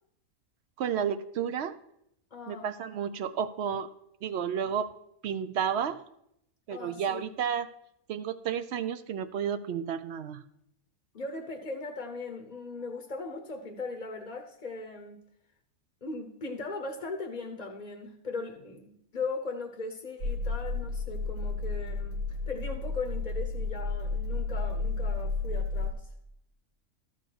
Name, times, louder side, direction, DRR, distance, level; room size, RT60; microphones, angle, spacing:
voice 1, 0.8-1.7 2.5-3.9 4.2-4.9 5.2-6.0 6.7-7.7 8.1-10.4, right 8 dB, 60° right, 12 dB, 0.7 m, -31 dB
voice 2, 2.3-2.7 6.7-7.3 11.1-15.2 16.0-26.1, left 3 dB, 35° left, 3 dB, 0.8 m, -38 dB
sound 1, 20.2-25.9, left 3 dB, 80° right, 1.5 m, -32 dB
13.0 x 4.6 x 6.0 m, 0.75 s
omnidirectional pair, 1.5 m